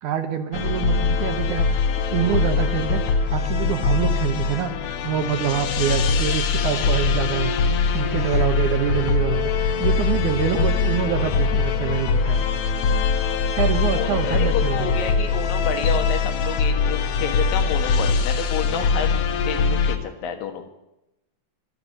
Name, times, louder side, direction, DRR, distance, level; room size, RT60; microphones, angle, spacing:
voice 1, 0.0-1.8 2.1-7.5 7.9-12.4 13.5-15.0, right 9 dB, 70° right, 7 dB, 2.4 m, -25 dB
sound 1, 0.5-20.0, left 5 dB, 65° left, 2.0 m, -22 dB
voice 2, 13.9-20.7, left 8 dB, 80° left, 6 dB, 3.4 m, -30 dB
24.0 x 8.0 x 6.7 m, 0.89 s
omnidirectional pair, 4.0 m